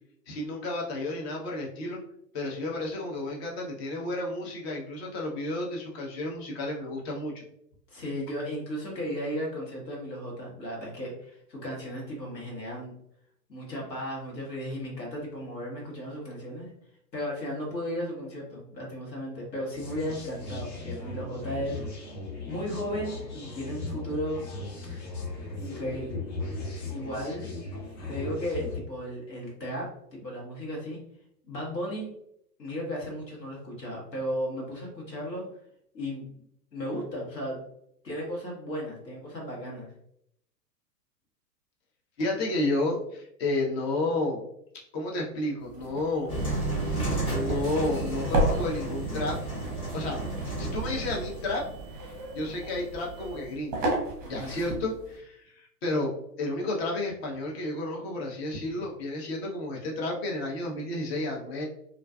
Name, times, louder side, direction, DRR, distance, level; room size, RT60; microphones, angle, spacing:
voice 1, 0.3-2.0 2.3-7.4 42.2-44.4 44.9-46.4 46.9-49.4 49.9-50.2 50.6-51.6 52.0-52.1 52.3-53.9 54.2-56.1 56.4-61.7, left 2 dB, 40° left, -1 dB, 0.7 m, -31 dB
voice 2, 7.9-12.9 13.5-16.7 17.1-21.8 22.5-24.4 24.8-25.0 25.6-26.2 26.9-27.5 28.1-31.0 31.4-32.1 32.6-35.4 35.9-36.3 36.7-37.6 38.0-39.9 54.3-54.5, equal, 90° left, -3 dB, 1.2 m, -35 dB
sound 1, 19.7-28.8, left 3 dB, 60° left, 1.1 m, -37 dB
sound 2, 45.6-55.2, right 1 dB, 20° right, 0.6 m, -34 dB
sound 3, 46.3-53.5, right 2 dB, 10° left, 0.8 m, -33 dB
2.4 x 2.3 x 2.3 m, 0.73 s
hypercardioid pair, 115°, 49 cm